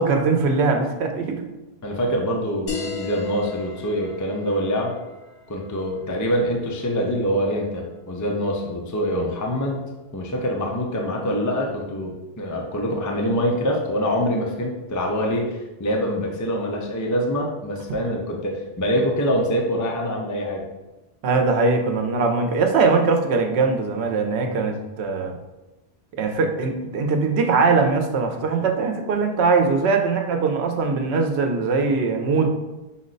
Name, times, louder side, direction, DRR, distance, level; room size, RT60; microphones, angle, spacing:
voice 1, 0.0-1.4 21.2-25.4 26.2-32.5, right 4 dB, 85° right, 5 dB, 0.9 m, -21 dB
voice 2, 1.8-5.0 5.5-9.8 10.1-20.6, equal, 25° left, 0 dB, 0.4 m, -25 dB
sound 1, 2.7-7.8, left 4 dB, 80° left, 1.1 m, -37 dB
5.7 x 2.1 x 3.8 m, 1.1 s
omnidirectional pair, 1.1 m